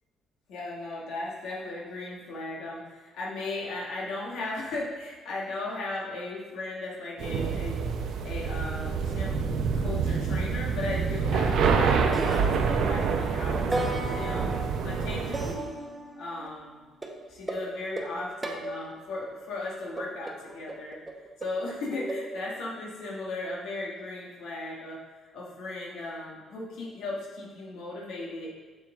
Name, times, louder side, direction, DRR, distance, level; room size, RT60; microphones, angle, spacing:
voice 1, 0.5-7.8 8.2-9.5 9.7-14.5 14.8-15.7 16.2-16.8 17.3-21.0 21.4-25.0 25.3-28.5, left 2 dB, 85° left, -4 dB, 1.7 m, -36 dB
sound 1, 7.2-15.5, right 5 dB, 75° right, 0.7 m, -27 dB
sound 2, 12.1-13.2 13.7-16.5 17.0-19.2 20.0-22.2, right 1 dB, 15° right, 0.8 m, -36 dB
7.4 x 6.0 x 3.5 m, 1.4 s
cardioid pair, 115°, 0 cm